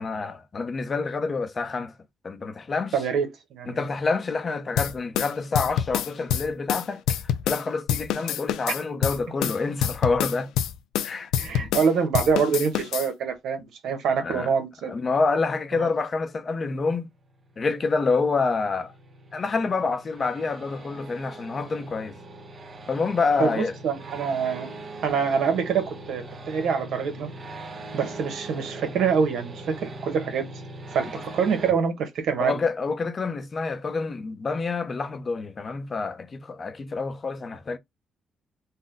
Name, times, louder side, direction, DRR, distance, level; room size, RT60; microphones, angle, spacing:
voice 1, 0.0-1.9 2.2-3.0 3.7-7.2 7.5-10.5 11.0-11.3 14.2-14.5 14.9-17.1 17.6-18.9 19.3-22.1 22.9-23.7 32.4-37.8, left 4 dB, 40° left, 0.7 m, -27 dB
voice 2, 2.9-3.8 11.4-14.9 15.8-15.9 23.4-24.7 25.0-27.3 27.9-30.5 30.9-32.5, right 6 dB, 75° right, 1.1 m, -25 dB
sound 1, 4.8-7.6 7.9-11.9 12.1-13.1, left 10 dB, 90° left, 0.4 m, -26 dB
sound 2, 17.0-31.7, right 2 dB, 35° right, 0.8 m, -41 dB
4.1 x 2.2 x 3.8 m
cardioid pair, 90°, 0 cm